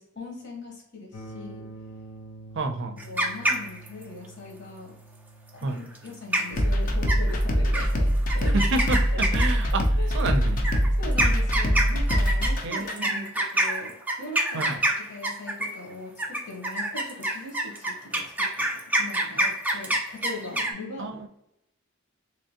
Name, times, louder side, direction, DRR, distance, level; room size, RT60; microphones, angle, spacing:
voice 1, 0.0-1.7 3.0-4.9 5.5-8.6 9.1-9.2 9.7-10.1 11.0-14.7 15.1-21.3, left 2 dB, 60° left, 0 dB, 1.2 m, -40 dB
sound 1, 1.1-11.0, right 2 dB, 85° left, 0.7 m, -48 dB
voice 2, 2.5-3.0 5.6-5.8 8.5-9.8 10.1-10.6 12.6-13.3 14.5-14.8 21.0-21.3, right 3 dB, 60° right, 8 dB, 0.5 m, -29 dB
sound 2, 3.0-4.0 5.9-6.1 6.3-6.7 7.1-7.4 7.7-7.9 8.3-9.7 10.6-15.8 16.2-20.7, right 1 dB, 10° right, 0.4 m, -26 dB
sound 3, 6.5-12.9, equal, 40° left, 0.6 m, -23 dB
3.3 x 3.0 x 2.8 m, 0.81 s
head